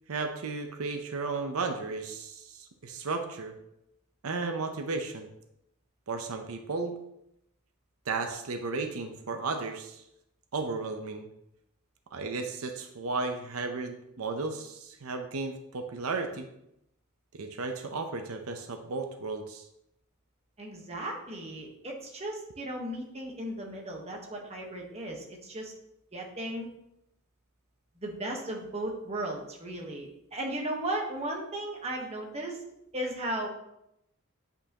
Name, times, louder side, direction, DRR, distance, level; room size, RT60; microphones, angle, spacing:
voice 1, 0.1-3.5 4.2-5.3 6.1-6.9 8.1-10.0 10.5-11.3 12.1-16.5 17.4-19.7, right 3 dB, 85° right, 6 dB, 0.7 m, -34 dB
voice 2, 20.6-25.7 26.1-26.7 28.0-32.6 32.9-33.5, right 1 dB, 30° right, 1 dB, 1.2 m, -36 dB
8.5 x 5.5 x 2.9 m, 0.82 s
head